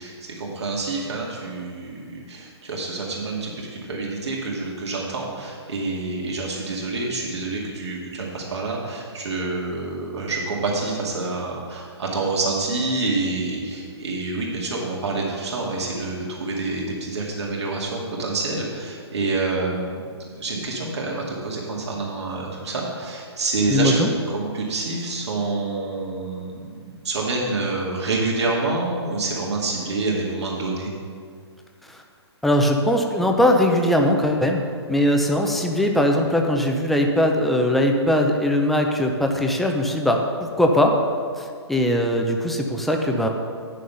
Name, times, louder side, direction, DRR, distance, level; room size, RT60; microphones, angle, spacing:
voice 1, 0.0-23.9 24.3-30.9, right 3 dB, 75° right, -3 dB, 2.1 m, -27 dB
voice 2, 23.7-24.1 31.9-32.0 32.4-41.0 41.4-43.3, left 1 dB, ahead, 2 dB, 0.5 m, -20 dB
9.3 x 6.5 x 5.6 m, 2.1 s
hypercardioid pair, 145°, 15 cm